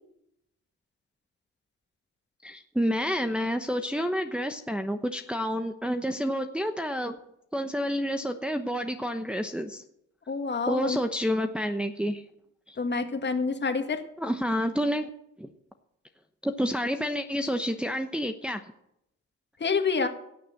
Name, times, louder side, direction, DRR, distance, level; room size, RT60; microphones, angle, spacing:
voice 1, 2.4-7.2 7.5-9.8 10.7-12.2 12.7-12.8 14.2-15.1 15.4-15.5 16.4-18.6, equal, 5° right, 5 dB, 0.9 m, -29 dB
voice 2, 10.3-11.0 12.8-14.0 19.6-20.1, left 4 dB, 35° left, 6 dB, 1.9 m, -27 dB
17.0 x 6.7 x 7.7 m, 0.78 s
cardioid pair, 90°, 30 cm